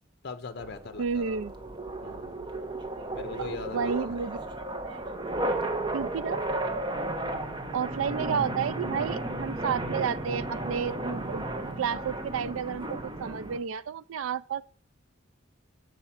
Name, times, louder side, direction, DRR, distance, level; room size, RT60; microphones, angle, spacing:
voice 1, 0.2-1.4 2.0-2.4 3.1-4.2, left 4 dB, 55° left, 0.6 m, -40 dB
sound 1, 0.6-13.6, right 1 dB, 25° right, 0.7 m, -34 dB
voice 2, 1.0-1.5 3.4-4.4 4.9-5.0 5.9-6.4 7.7-14.6, right 7 dB, 80° right, 0.4 m, -31 dB
7.0 x 4.9 x 5.6 m
head